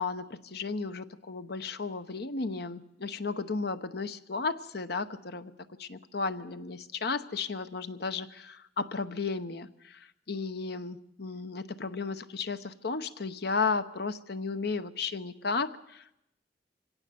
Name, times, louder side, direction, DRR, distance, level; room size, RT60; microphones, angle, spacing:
voice 1, 0.0-5.5 5.8-16.1, left 4 dB, 65° left, 11 dB, 1.0 m, -34 dB
24.5 x 17.0 x 7.0 m, 0.82 s
head